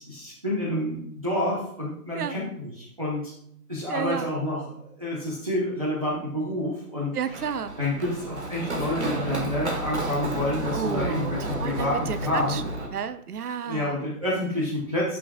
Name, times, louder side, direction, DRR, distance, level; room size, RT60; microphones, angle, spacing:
voice 1, 0.0-3.3 3.7-4.6 5.0-7.4 7.8-12.6 13.6-15.2, left 1 dB, 20° right, -7 dB, 1.0 m, -28 dB
voice 2, 3.9-4.3 7.1-7.8 10.7-14.0, right 7 dB, 70° right, 13 dB, 0.7 m, -32 dB
Run, 7.2-12.9, right 1 dB, 45° right, 1.5 m, -31 dB
14.5 x 6.0 x 2.4 m, 0.69 s
hypercardioid pair, 175°, 47 cm